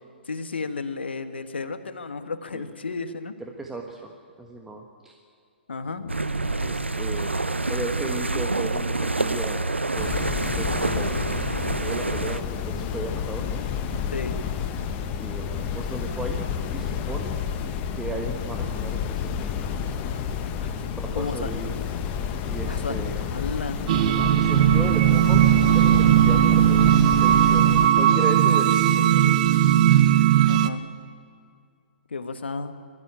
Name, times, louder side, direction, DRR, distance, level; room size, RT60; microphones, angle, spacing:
voice 1, 0.2-3.3 5.7-6.2 14.1-14.4 20.6-21.5 22.7-22.9 23.2-23.8 28.1-28.3 30.5-30.8 32.1-32.7, left 4 dB, 70° left, 9 dB, 1.6 m, -33 dB
voice 2, 3.4-4.1 4.4-5.1 6.6-7.3 7.7-11.2 11.8-13.5 15.2-16.4 16.7-17.4 17.9-19.3 21.0-21.7 22.5-23.3 24.0-25.4 25.7-26.9 27.2-27.7 28.0-29.2, right 2 dB, 5° right, 1 dB, 1.4 m, -35 dB
sound 1, 6.1-12.4, right 2 dB, 85° right, 0.8 m, -27 dB
sound 2, 10.0-27.9, left 7 dB, 25° left, 1.4 m, -30 dB
sound 3, 23.9-30.7, right 11 dB, 40° right, 0.9 m, -18 dB
23.0 x 14.0 x 8.8 m, 2.2 s
figure-of-eight pair, 120°, 6 cm